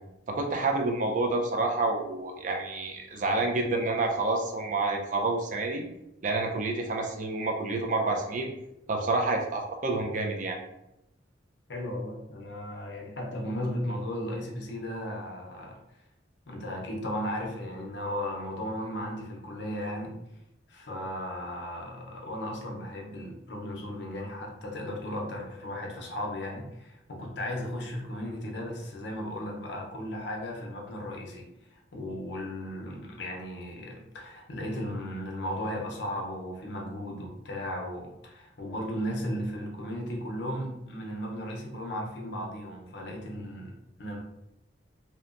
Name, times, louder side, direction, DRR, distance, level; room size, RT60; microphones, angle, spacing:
voice 1, 0.3-5.8 6.2-8.5 8.9-10.6, right 2 dB, 45° right, 1 dB, 0.4 m, -28 dB
voice 2, 11.7-15.8 16.5-20.1 20.7-43.7 44.0-44.2, equal, 65° left, -1 dB, 0.6 m, -36 dB
2.8 x 2.1 x 2.4 m, 0.87 s
head